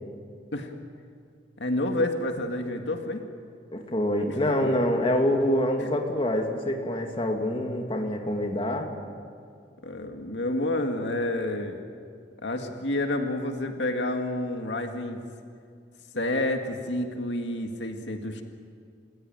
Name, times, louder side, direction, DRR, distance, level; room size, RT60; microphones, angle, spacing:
voice 1, 1.6-3.2 4.3-4.4 4.7-4.8 5.8-5.9 9.8-11.8 12.4-15.2 16.1-18.4, left 1 dB, 85° left, 4 dB, 2.1 m, -29 dB
voice 2, 3.7-8.9, left 1 dB, 30° left, 2 dB, 2.5 m, -26 dB
30.0 x 16.5 x 9.1 m, 2.2 s
head